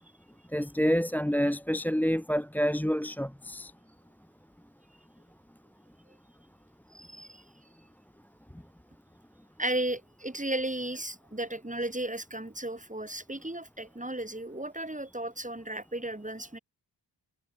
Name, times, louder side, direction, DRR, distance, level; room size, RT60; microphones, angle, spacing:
voice 1, 0.5-3.7, equal, 5° left, 1.1 m, -28 dB
voice 2, 6.9-7.4 9.6-16.6, right 1 dB, 15° right, 4.5 m, -35 dB
wide cardioid pair, 55°, 45 cm